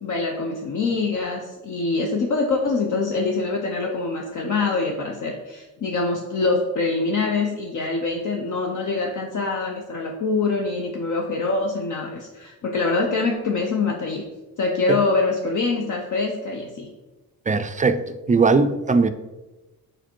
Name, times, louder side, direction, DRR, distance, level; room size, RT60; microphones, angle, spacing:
voice 1, 0.0-14.2 14.6-16.9, left 3 dB, 55° left, 1 dB, 0.8 m, -24 dB
voice 2, 17.5-19.1, right 4 dB, 20° right, 10 dB, 0.4 m, -19 dB
4.9 x 4.5 x 4.4 m, 1.1 s
cardioid pair, 90°, 36 cm